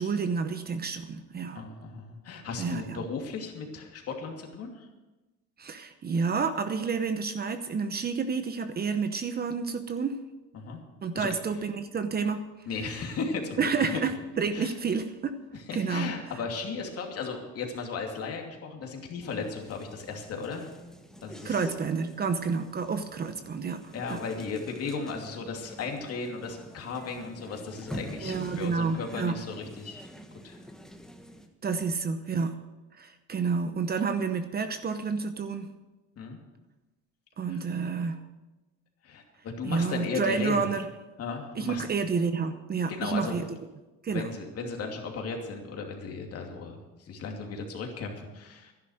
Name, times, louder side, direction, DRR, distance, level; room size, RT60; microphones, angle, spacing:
voice 1, 0.0-1.6 2.6-3.0 5.6-10.2 11.0-12.4 13.6-15.3 15.7-16.1 21.4-23.8 24.1-24.2 28.2-29.4 31.6-32.5 33.0-35.7 37.4-38.2 39.6-40.9 41.5-43.4 44.0-44.3, right 5 dB, 30° right, 9 dB, 0.9 m, -29 dB
voice 2, 1.5-4.9 10.5-10.8 11.1-11.3 12.7-13.6 13.9-14.0 14.5-14.7 15.7-20.7 21.2-21.6 23.9-30.1 30.4-30.6 36.2-36.4 37.4-37.6 39.0-40.6 41.2-41.8 42.9-43.4 44.1-48.7, left 4 dB, 50° left, 2 dB, 2.7 m, -36 dB
sound 1, 19.2-31.5, equal, ahead, 1.4 m, -46 dB
12.0 x 11.0 x 6.4 m, 1.1 s
cardioid pair, 115°, 31 cm